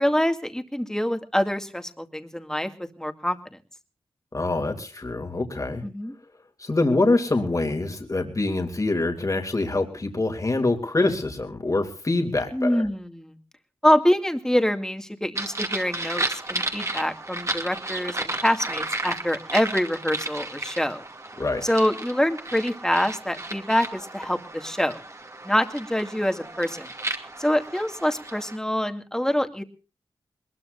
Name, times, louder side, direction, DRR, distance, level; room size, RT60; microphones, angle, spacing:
voice 1, 0.0-3.6 5.8-6.2 12.5-13.4 13.8-21.0 21.6-25.0 25.4-26.9 27.4-29.6, equal, 5° left, 7 dB, 2.4 m, -25 dB
voice 2, 4.3-5.8 6.6-12.8 21.4-21.6, left 2 dB, 35° left, 4 dB, 3.0 m, -25 dB
sound 1, 15.4-28.6, right 2 dB, 30° right, 2.5 m, -33 dB
21.5 x 21.0 x 2.6 m, 0.35 s
cardioid pair, 55°, 9 cm